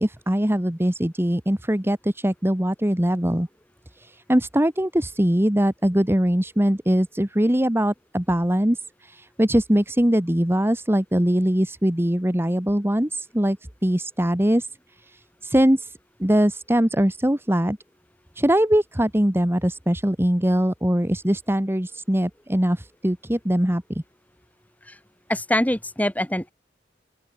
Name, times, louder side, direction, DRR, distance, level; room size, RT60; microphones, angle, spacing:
voice 1, 0.0-3.5 4.0-13.6 13.8-14.7 15.0-15.9 16.2-17.8 18.3-23.8, equal, 15° right, 1.7 m, -22 dB
voice 2, 25.3-26.5, left 1 dB, 10° left, 7.0 m, -24 dB
open air
head